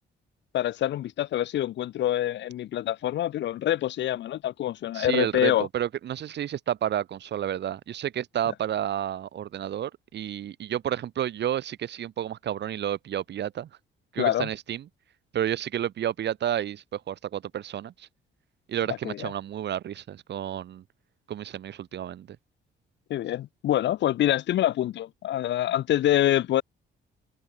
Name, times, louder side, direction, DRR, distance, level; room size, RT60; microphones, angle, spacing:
voice 1, 0.5-5.7 14.2-14.5 19.0-19.3 23.1-26.6, left 12 dB, 65° left, 0.6 m, -26 dB
voice 2, 4.9-13.7 14.1-14.9 15.3-18.1 18.7-20.8 21.3-22.4, right 10 dB, 60° right, 1.2 m, -31 dB
cardioid pair, 90°, 20 cm